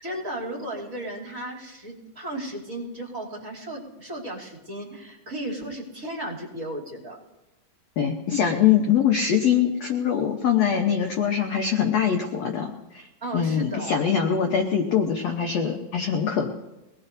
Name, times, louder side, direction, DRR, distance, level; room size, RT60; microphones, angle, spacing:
voice 1, 0.0-7.2 13.2-13.9, right 1 dB, 25° right, -2 dB, 3.1 m, -34 dB
voice 2, 8.0-13.1 13.3-16.5, left 8 dB, 65° left, 3 dB, 1.7 m, -23 dB
23.5 x 19.0 x 2.7 m, 1.0 s
omnidirectional pair, 4.0 m